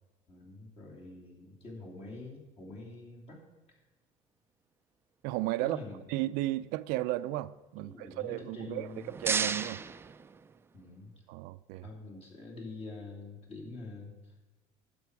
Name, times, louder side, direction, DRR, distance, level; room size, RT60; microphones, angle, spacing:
voice 1, 0.3-3.4 5.6-6.0 7.8-9.1 10.7-11.1 11.8-14.3, left 3 dB, 40° left, 3.0 m, -46 dB
voice 2, 5.2-5.8 6.1-9.8 11.3-11.9, right 17 dB, 80° right, 0.4 m, -34 dB
sound 1, 8.7-10.9, right 5 dB, 15° right, 0.4 m, -35 dB
11.5 x 7.8 x 4.8 m
cardioid pair, 130°, 15 cm